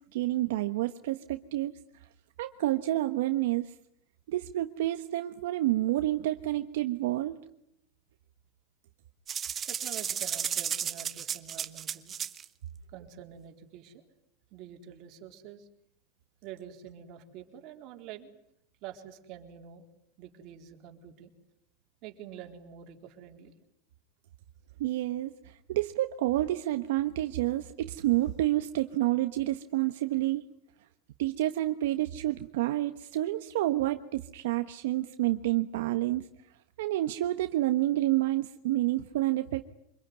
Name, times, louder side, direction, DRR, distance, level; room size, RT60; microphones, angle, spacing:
voice 1, 0.1-1.7 2.4-3.7 4.3-7.4 24.8-30.4 31.2-36.2 36.8-39.7, right 15 dB, 80° right, 8 dB, 1.2 m, -29 dB
sound 1, 9.3-12.5, right 8 dB, 25° right, 1.2 m, -33 dB
voice 2, 9.6-12.2 12.9-14.1 14.5-15.7 16.4-18.3 18.8-19.8 20.2-21.3 22.0-23.5, right 10 dB, 50° right, 4 dB, 4.0 m, -47 dB
25.5 x 22.5 x 9.7 m, 0.76 s
supercardioid pair, 140°, 0 cm